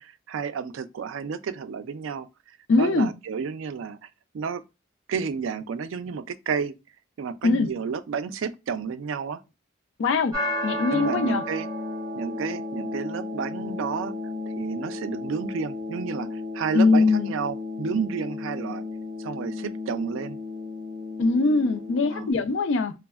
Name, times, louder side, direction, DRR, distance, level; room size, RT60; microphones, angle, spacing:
voice 1, 0.0-2.3 2.8-4.0 4.3-4.6 5.1-6.7 7.2-9.4 10.9-11.7 12.1-14.1 14.6-18.8 19.2-20.4 22.1-22.3, right 6 dB, 75° right, 0.3 m, -31 dB
voice 2, 2.7-3.1 7.4-7.7 10.0-10.3 10.6-11.4 16.7-17.4 21.2-22.9, left 3 dB, 65° left, 0.4 m, -21 dB
sound 1, 10.3-22.3, left 2 dB, 20° right, 0.9 m, -33 dB
3.2 x 2.1 x 2.2 m
head